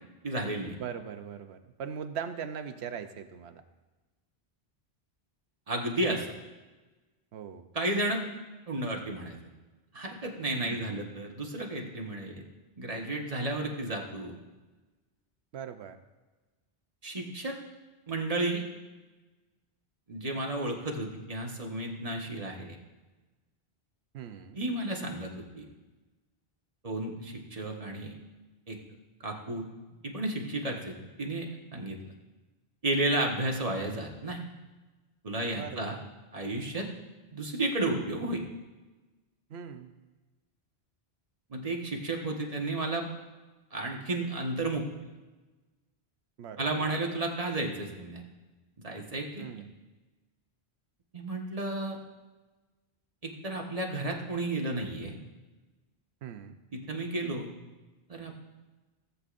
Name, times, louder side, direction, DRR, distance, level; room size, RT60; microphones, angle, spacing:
voice 1, 0.2-0.7 5.7-6.3 7.7-8.2 8.7-9.4 9.9-12.4 12.8-14.4 17.0-17.6 18.1-18.6 20.1-22.8 24.5-25.7 26.8-28.1 28.7-28.8 29.2-29.7 30.0-32.1 32.8-34.4 35.2-36.0 36.3-36.9 37.3-38.4 41.5-43.1 43.7-44.9 46.6-48.2 48.8-49.5 51.1-52.0 53.2-55.2 56.7-57.5 58.1-58.4, right 2 dB, 35° right, 1 dB, 1.3 m, -32 dB
voice 2, 0.8-3.6 7.3-7.7 10.6-11.0 15.5-16.0 24.1-24.6 35.5-36.0 39.5-39.9 46.4-46.8 49.4-49.7 56.2-56.6, right 7 dB, 85° right, 9 dB, 1.0 m, -40 dB
17.0 x 8.1 x 2.5 m, 1.2 s
omnidirectional pair, 1.1 m